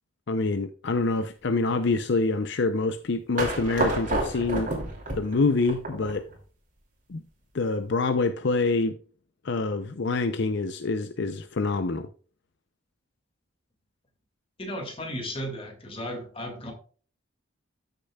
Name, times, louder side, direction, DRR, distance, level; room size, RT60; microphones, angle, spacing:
voice 1, 0.3-4.7 5.1-6.3 7.1-7.2 7.5-9.0 9.4-12.1, left 3 dB, 60° left, 0.6 m, -26 dB
sound 1, 3.4-6.4, right 2 dB, 40° right, 2.8 m, -30 dB
voice 2, 14.6-16.7, equal, 30° left, 2.2 m, -35 dB
13.5 x 6.7 x 2.3 m
head